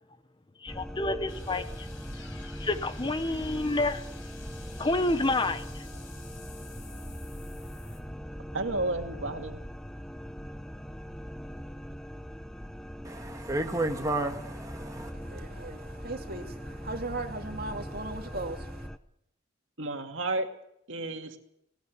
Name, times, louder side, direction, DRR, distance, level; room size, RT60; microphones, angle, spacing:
voice 1, 0.6-1.9 2.6-4.0 4.8-5.8, left 2 dB, 25° left, 1.0 m, -29 dB
sound 1, 0.7-19.0, equal, 5° left, 0.8 m, -41 dB
sound 2, 1.3-8.0, left 5 dB, 80° left, 5.0 m, -51 dB
voice 2, 8.5-9.6 19.8-20.5 20.9-21.4, right 2 dB, 80° right, 2.3 m, -32 dB
voice 3, 13.0-15.1, right 2 dB, 20° right, 1.8 m, -32 dB
voice 4, 15.1-18.9, right 2 dB, 50° right, 2.5 m, -38 dB
18.5 x 17.5 x 8.4 m
head